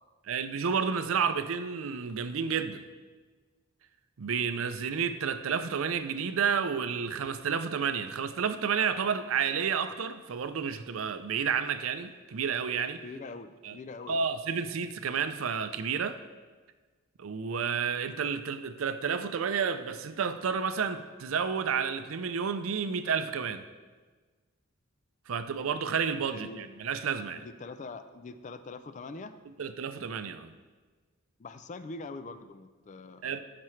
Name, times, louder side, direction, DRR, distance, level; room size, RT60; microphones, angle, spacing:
voice 1, 0.3-2.8 4.2-13.0 13.6-13.8 14.1-16.2 17.2-23.6 25.3-27.5 29.6-30.5 33.2-33.4, right 6 dB, 90° right, 10 dB, 0.5 m, -31 dB
voice 2, 13.0-14.3 26.3-26.6 27.6-29.3 31.4-33.4, left 3 dB, 35° left, 11 dB, 0.4 m, -43 dB
14.5 x 5.9 x 3.2 m, 1.4 s
head